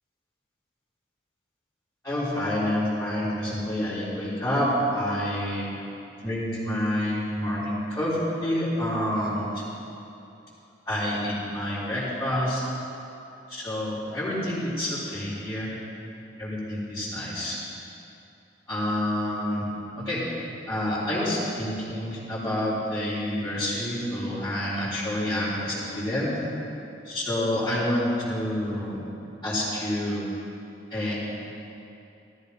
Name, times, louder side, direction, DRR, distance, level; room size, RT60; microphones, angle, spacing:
voice 1, 2.0-5.6 6.2-9.6 10.9-12.6 13.5-15.7 16.4-17.6 18.7-19.7 20.0-20.2 20.7-26.3 27.0-29.0 29.4-30.2 30.9-31.2, left 1 dB, 15° left, -13 dB, 3.9 m, -28 dB
17.0 x 14.0 x 5.4 m, 2.8 s
head